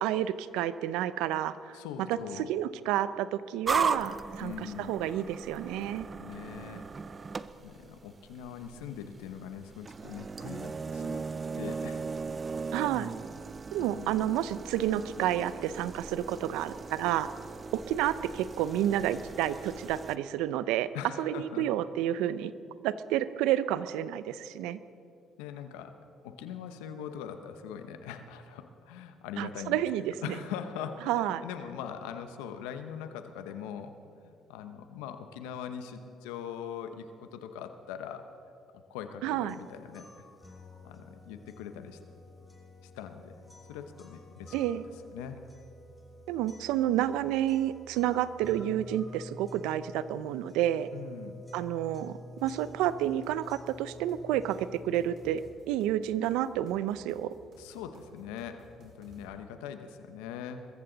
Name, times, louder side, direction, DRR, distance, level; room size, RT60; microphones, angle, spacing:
voice 1, 0.0-1.8 2.1-6.1 12.7-13.1 13.7-17.3 17.7-20.9 21.2-22.5 22.8-24.8 29.4-30.4 31.1-31.4 39.2-39.6 44.5-44.8 46.3-50.9 51.5-55.4 55.7-57.3, right 12 dB, 85° right, 15 dB, 0.5 m, -30 dB
voice 2, 1.7-2.5 4.4-4.9 6.2-6.9 7.6-11.2 11.6-12.1 13.9-14.1 20.9-21.7 25.4-26.0 26.2-29.8 30.2-33.9 34.2-38.3 38.7-40.1 40.8-42.0 42.8-43.4 43.7-44.5 45.1-45.4 50.9-51.4 57.6-60.7, left 8 dB, 90° left, 8 dB, 0.9 m, -41 dB
sound 1, 3.7-20.2, right 4 dB, 35° right, 0.6 m, -38 dB
sound 2, 39.5-55.5, left 2 dB, 15° left, 3.4 m, -50 dB
sound 3, 52.4-59.2, equal, 55° right, 4.9 m, -58 dB
22.0 x 14.5 x 4.0 m, 2.5 s
supercardioid pair, 70°, 0 cm